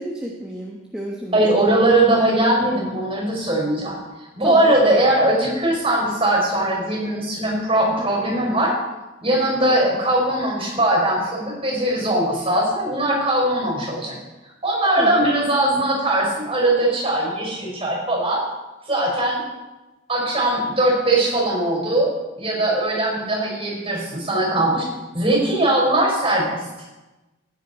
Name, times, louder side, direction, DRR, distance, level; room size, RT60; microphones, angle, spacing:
voice 1, 0.0-1.4 4.4-4.8 8.0-8.3 15.0-15.3, equal, 5° right, -3 dB, 1.2 m, -31 dB
voice 2, 1.3-4.0 4.3-8.7 9.2-14.2 14.6-18.4 18.9-19.4 20.1-24.8 25.1-26.6, right 1 dB, 25° right, -2 dB, 5.1 m, -20 dB
15.0 x 9.7 x 4.2 m, 1.1 s
head